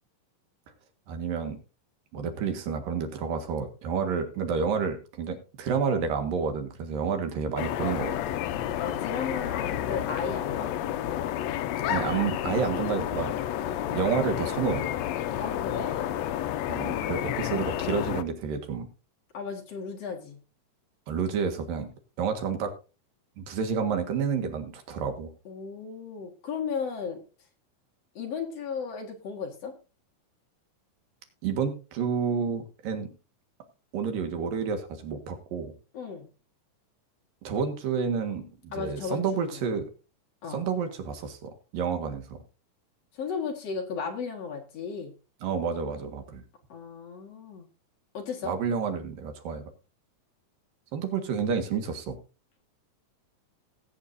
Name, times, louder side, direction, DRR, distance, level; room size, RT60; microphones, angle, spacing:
voice 1, 1.1-1.6 2.1-8.4 11.9-13.3 13.9-14.9 16.7-18.9 21.1-21.9 22.2-22.7 23.4-25.3 31.4-33.1 33.9-35.7 37.5-39.9 40.5-42.4 45.4-46.4 48.4-49.6 50.9-52.2, right 6 dB, 80° right, 6 dB, 3.4 m, -30 dB
sound 1, 7.6-18.2, left 11 dB, 90° left, 1.5 m, -30 dB
voice 2, 8.8-10.7 15.4-16.1 19.3-20.4 25.4-27.2 28.1-29.7 35.9-36.3 38.7-39.2 39.5-39.6 40.4-40.7 43.1-45.1 46.7-47.7 48.1-48.5, left 6 dB, 50° left, 2 dB, 2.7 m, -35 dB
19.0 x 8.8 x 2.7 m, 0.33 s
omnidirectional pair, 3.9 m